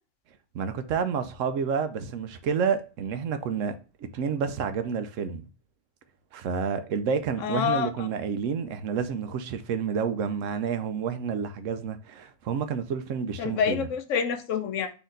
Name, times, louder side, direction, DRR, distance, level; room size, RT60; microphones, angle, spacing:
voice 1, 0.5-5.4 6.3-13.9, right 6 dB, 75° right, 0.9 m, -29 dB
voice 2, 7.4-7.9 13.4-14.9, left 7 dB, 70° left, 1.0 m, -27 dB
4.2 x 2.9 x 3.8 m
omnidirectional pair, 1.4 m